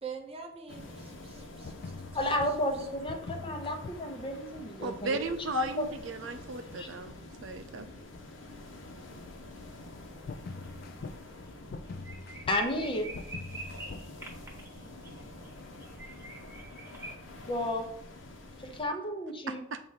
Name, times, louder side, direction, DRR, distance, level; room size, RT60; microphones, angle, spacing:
voice 1, 0.0-1.9 2.8-2.9, right 6 dB, 30° right, 3 dB, 0.6 m, -44 dB
sound 1, 0.7-18.8, left 1 dB, 70° left, 1.0 m, -48 dB
sound 2, 1.4-14.1, left 3 dB, 50° left, 0.4 m, -44 dB
voice 2, 2.1-5.2 5.5-5.9 6.5-6.9 12.5-13.1 17.5-17.9 18.6-19.6, left 1 dB, 25° left, 4 dB, 0.8 m, -32 dB
voice 3, 4.8-7.1 7.4-7.9 19.5-19.8, right 4 dB, 75° right, 8 dB, 0.6 m, -36 dB
sound 3, 10.3-10.7 10.9-11.1 11.4-11.5 11.8-17.1, right 2 dB, 15° right, 1.2 m, -47 dB
6.5 x 2.6 x 5.6 m, 0.78 s
head